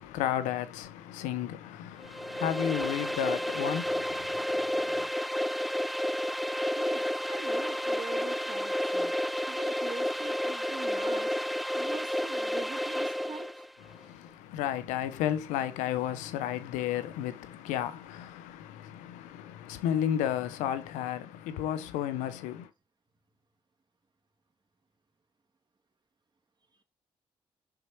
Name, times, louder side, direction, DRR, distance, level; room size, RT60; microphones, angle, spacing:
voice 1, 0.0-5.1 13.8-22.7, left 10 dB, 90° left, 0.9 m, -33 dB
sound 1, 2.0-13.7, equal, ahead, 0.4 m, -31 dB
voice 2, 6.8-9.1 9.5-11.4 11.7-13.6, right 3 dB, 35° right, 2.8 m, -43 dB
6.2 x 4.9 x 4.5 m
supercardioid pair, 55°, 12 cm